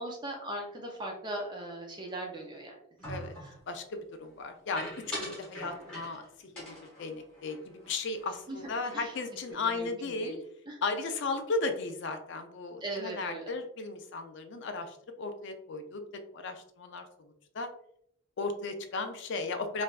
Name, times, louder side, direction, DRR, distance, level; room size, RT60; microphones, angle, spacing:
voice 1, 0.0-3.1 3.4-3.5 8.5-8.6 8.9-9.1 9.6-10.8 12.8-13.5, right 1 dB, 20° right, -1 dB, 0.5 m, -39 dB
sound 1, 3.0-3.6 4.8-6.3 6.6-8.3 8.6-8.7 9.0-9.5, equal, 5° left, 1.3 m, -43 dB
voice 2, 3.7-10.4 10.8-16.0 16.3-17.7 18.4-19.8, left 3 dB, 55° left, 6 dB, 0.4 m, -36 dB
3.2 x 2.5 x 2.2 m, 0.69 s
head